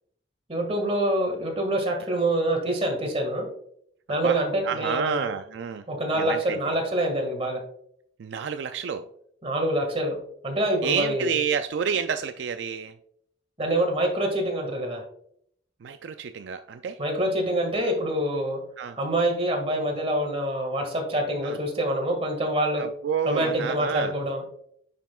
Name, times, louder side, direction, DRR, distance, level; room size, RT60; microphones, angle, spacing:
voice 1, 0.5-3.5 4.1-5.3 5.9-7.6 9.4-10.2 10.4-11.3 13.6-15.0 17.0-18.6 19.0-22.9 23.2-24.4, right 1 dB, 35° right, 2 dB, 1.8 m, -26 dB
voice 2, 4.2-5.8 6.1-6.7 8.2-9.1 10.8-12.9 15.8-17.0 18.8-19.0 21.4-21.6 22.8-24.1, right 7 dB, 75° right, 9 dB, 0.4 m, -29 dB
9.2 x 5.7 x 2.3 m, 0.67 s
head